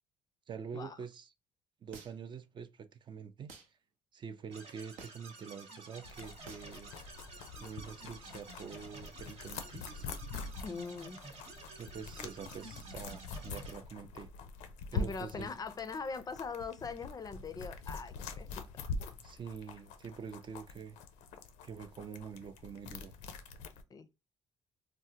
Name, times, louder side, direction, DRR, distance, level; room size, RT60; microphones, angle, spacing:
voice 1, 0.5-1.3 1.8-3.5 4.1-6.9 7.6-10.1 11.7-14.3 14.9-15.5 19.2-21.0 21.6-23.1, right 6 dB, 40° right, 0.4 m, -46 dB
sound 1, 1.9-2.4 3.5-3.7 5.0-5.3 6.5-6.7, right 4 dB, 80° right, 0.6 m, -51 dB
sound 2, 4.5-13.8, right 3 dB, 60° right, 1.0 m, -52 dB
sound 3, 6.0-23.8, left 4 dB, 90° left, 0.4 m, -44 dB
voice 2, 10.6-11.2 14.9-19.1 23.9-24.1, left 4 dB, 30° left, 0.4 m, -42 dB
3.4 x 2.0 x 2.7 m
supercardioid pair, 75°, 12 cm